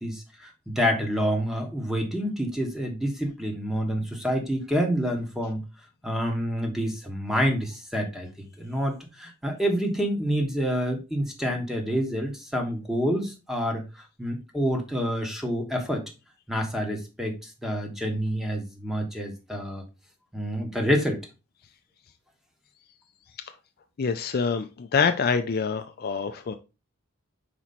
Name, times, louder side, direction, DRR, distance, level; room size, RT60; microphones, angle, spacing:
voice 1, 0.0-5.6 6.0-8.3 8.6-16.0 16.5-19.8 20.3-21.2, equal, ahead, 1.2 m, -28 dB
voice 2, 24.0-26.5, left 5 dB, 45° left, 0.4 m, -26 dB
5.0 x 4.4 x 4.2 m
head